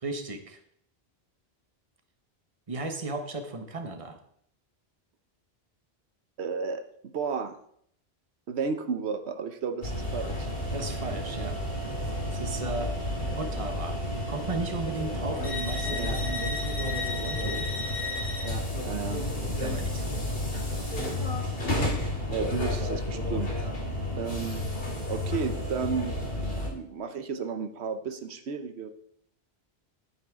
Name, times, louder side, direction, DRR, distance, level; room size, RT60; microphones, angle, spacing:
voice 1, 0.0-0.6 2.7-4.2 10.7-11.6 12.3-13.0 13.3-14.0 14.3-17.7 19.5-20.2, right 2 dB, 35° right, 6 dB, 1.2 m, -35 dB
voice 2, 6.4-7.6 8.5-10.5 15.9-16.2 18.4-19.2 20.7-20.9 21.7-21.9 22.3-23.7 24.2-24.6 25.1-26.2 26.7-28.9, right 5 dB, 85° right, 9 dB, 1.1 m, -33 dB
sound 1, 9.8-26.7, left 1 dB, 65° left, 2.3 m, -31 dB
11.0 x 9.1 x 3.6 m, 0.68 s
omnidirectional pair, 1.1 m